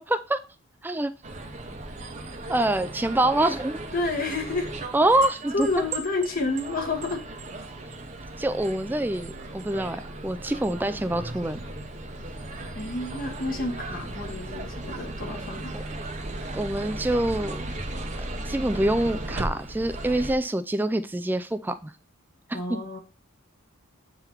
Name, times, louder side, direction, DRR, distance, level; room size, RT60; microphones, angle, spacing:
voice 1, 0.1-0.4 0.8-1.1 2.5-3.8 4.9-5.7 8.4-11.6 15.7-15.8 16.5-17.6 18.5-21.9 22.7-22.8, right 1 dB, 10° right, 11 dB, 0.3 m, -25 dB
sound 1, 1.2-20.3, right 2 dB, 35° right, 0.8 m, -36 dB
voice 2, 3.9-4.7 5.5-7.2 12.7-15.8 22.5-23.0, left 3 dB, 40° left, 4 dB, 1.2 m, -29 dB
8.2 x 3.8 x 4.5 m, 0.32 s
head